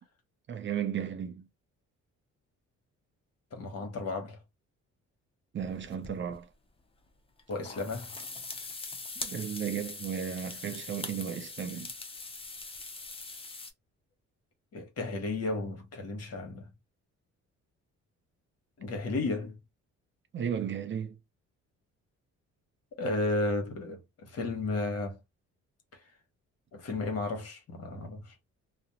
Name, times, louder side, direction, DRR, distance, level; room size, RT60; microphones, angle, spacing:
voice 1, 0.5-1.5 5.5-6.5 9.2-11.9 20.3-21.2, right 8 dB, 40° right, 0.4 m, -34 dB
voice 2, 3.5-4.4 7.5-8.2 14.7-16.7 18.8-19.6 23.0-25.2 26.7-28.3, left 2 dB, 55° left, 1.0 m, -33 dB
sound 1, 5.6-6.4 7.4-13.7, left 3 dB, 20° left, 0.5 m, -42 dB
2.4 x 2.0 x 2.7 m
cardioid pair, 90°, 30 cm